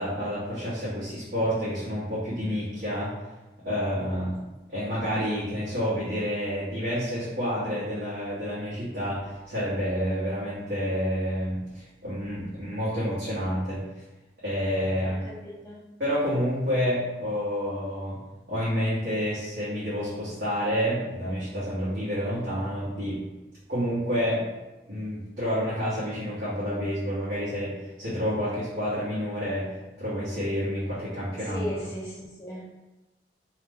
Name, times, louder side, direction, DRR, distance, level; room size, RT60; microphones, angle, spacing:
voice 1, 0.0-3.1 3.6-4.4 4.7-13.8 14.4-15.2 16.0-18.2 18.5-23.2 23.7-24.4 24.9-29.7 30.0-31.9, equal, 70° right, -12 dB, 1.1 m, -29 dB
voice 2, 15.0-15.8 31.5-32.7, left 1 dB, 15° left, -7 dB, 0.4 m, -37 dB
2.8 x 2.1 x 3.4 m, 1.1 s
head